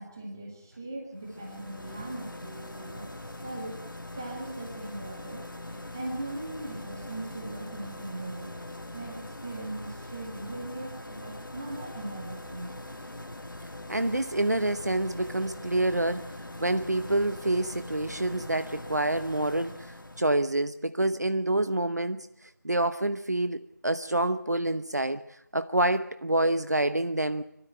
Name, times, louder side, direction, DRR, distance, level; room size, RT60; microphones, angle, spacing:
voice 1, 0.0-3.1 3.4-3.8 4.2-8.5 8.9-12.7, right 2 dB, 10° right, 1 dB, 2.0 m, -39 dB
sound 1, 1.2-20.6, left 1 dB, 85° left, 2.2 m, -42 dB
voice 2, 13.9-16.3 16.6-25.2 25.5-27.4, right 1 dB, 55° right, 11 dB, 0.9 m, -27 dB
24.5 x 13.0 x 9.9 m, 0.80 s
figure-of-eight pair, 175°, 11 cm